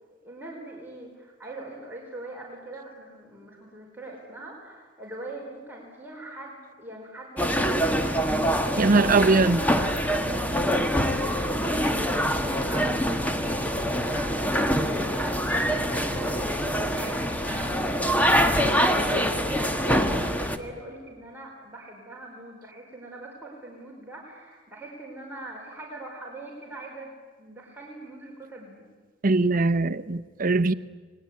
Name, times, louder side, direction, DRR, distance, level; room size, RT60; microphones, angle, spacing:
voice 1, 0.2-8.3 9.1-10.0 10.3-17.9 18.3-27.1 27.4-28.9, right 1 dB, 10° right, 4.8 m, -42 dB
sound 1, 7.4-20.6, equal, 10° left, 1.6 m, -25 dB
voice 2, 8.8-9.6 29.2-30.7, right 3 dB, 50° right, 0.8 m, -21 dB
29.0 x 20.5 x 9.6 m
head